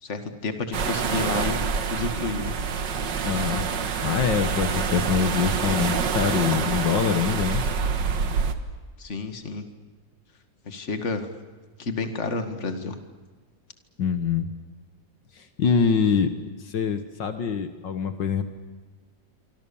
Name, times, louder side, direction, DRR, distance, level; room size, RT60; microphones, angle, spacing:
voice 1, 0.0-1.6 1.9-2.5 9.0-9.7 10.6-11.3 11.8-13.0, left 3 dB, 40° left, 8 dB, 2.3 m, -30 dB
sound 1, 0.7-8.6, right 5 dB, 70° right, 2.2 m, -26 dB
voice 2, 3.2-3.6 4.0-7.6 14.0-14.5 15.4-16.3 16.6-18.4, left 6 dB, 70° left, 9 dB, 2.0 m, -24 dB
27.0 x 24.5 x 7.1 m, 1.3 s
omnidirectional pair, 2.0 m